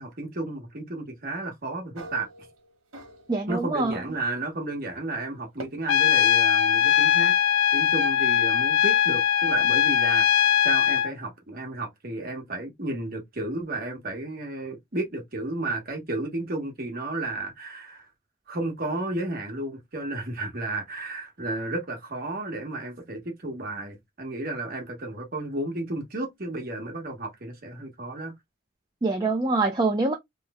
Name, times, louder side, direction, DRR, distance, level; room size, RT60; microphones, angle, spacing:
voice 1, 0.0-2.3 3.5-7.3 7.7-18.1 18.5-28.3, right 2 dB, 40° right, 1.1 m, -32 dB
sound 1, 1.9-3.5 3.8-4.3 5.6-5.7, right 1 dB, 80° right, 1.2 m, -43 dB
voice 2, 3.3-4.0 29.0-30.1, right 3 dB, 20° right, 0.4 m, -24 dB
Trumpet, 5.9-11.1, left 9 dB, 70° left, 0.3 m, -21 dB
3.1 x 2.0 x 3.4 m
head